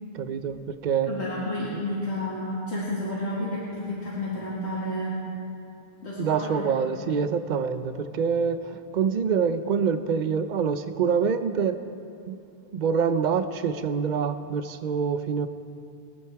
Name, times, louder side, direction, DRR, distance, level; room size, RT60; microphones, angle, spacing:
voice 1, 0.1-1.1 1.7-1.8 6.2-11.8 12.3-12.4 12.7-15.5, right 6 dB, 50° right, 10 dB, 0.7 m, -26 dB
voice 2, 1.1-5.2 6.0-6.7, left 1 dB, 90° left, -8 dB, 2.3 m, -31 dB
23.0 x 8.7 x 4.7 m, 2.6 s
omnidirectional pair, 1.1 m